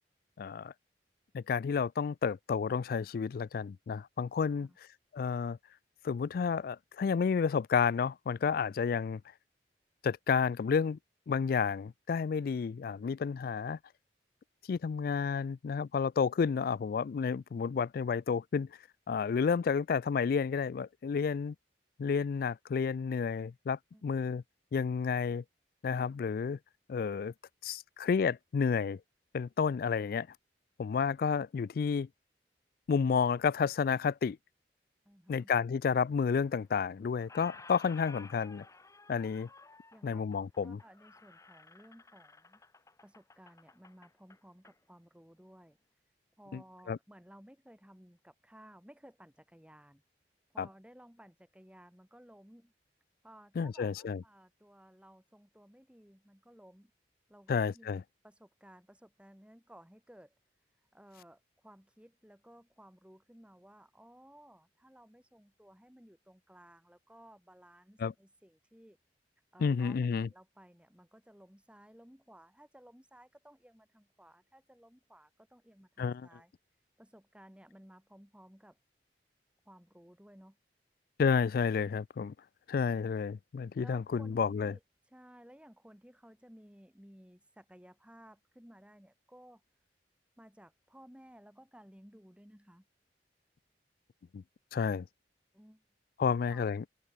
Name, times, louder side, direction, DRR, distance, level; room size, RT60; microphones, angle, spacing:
voice 1, 0.4-0.7 1.3-4.7 5.1-5.6 6.0-9.2 10.0-11.0 11.3-13.8 14.7-18.7 19.1-21.5 22.0-24.4 24.7-25.4 25.8-26.6 26.9-27.3 27.6-29.0 29.3-30.3 30.8-32.1 32.9-34.4 35.3-38.6 39.1-39.5 40.0-40.8 46.5-46.6 46.9-47.0 50.6-50.7 53.6-54.2 57.5-58.0 68.0-68.1 69.6-70.3 76.0-76.3 81.2-82.3 82.7-84.7 94.3-94.4 94.7-95.1 96.2-96.8, left 6 dB, 55° left, 0.3 m, -31 dB
voice 2, 35.0-35.5 39.9-40.2 40.6-42.6 43.0-45.8 46.4-50.0 50.5-52.7 53.2-56.9 57.3-60.4 60.9-69.0 69.5-76.5 77.0-78.8 79.7-80.6 83.8-84.8 85.1-89.6 90.4-92.9 95.5-95.8 96.3-96.8, equal, 5° right, 2.4 m, -57 dB
Squeak, 36.3-36.9 37.2-44.8, left 3 dB, 20° left, 1.2 m, -55 dB
open air
head